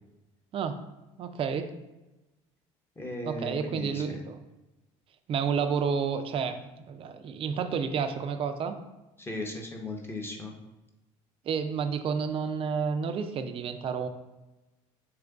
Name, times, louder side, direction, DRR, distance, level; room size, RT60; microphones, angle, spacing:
voice 1, 1.2-1.7 3.3-4.4 5.3-8.7 11.4-14.1, right 6 dB, 40° right, 7 dB, 0.4 m, -30 dB
voice 2, 3.0-4.2 9.2-10.5, left 1 dB, 15° left, 1 dB, 0.6 m, -37 dB
3.0 x 2.4 x 3.4 m, 1.0 s
supercardioid pair, 75°, 15 cm